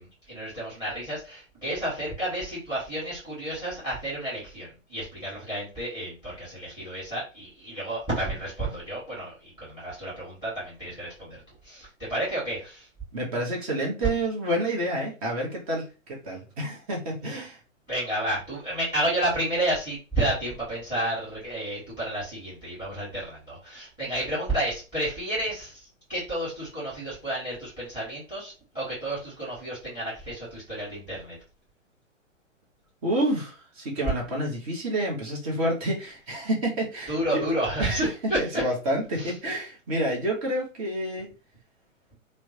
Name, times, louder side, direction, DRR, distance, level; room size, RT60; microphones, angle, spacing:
voice 1, 0.0-12.9 17.9-31.4 37.1-38.4 39.2-39.3, right 1 dB, 10° right, -8 dB, 1.6 m, -31 dB
voice 2, 13.1-17.6 33.0-37.4 37.8-38.1 38.4-41.3, right 1 dB, 30° right, -1 dB, 0.9 m, -29 dB
3.1 x 2.1 x 2.7 m, 0.33 s
figure-of-eight pair, 120°, 39 cm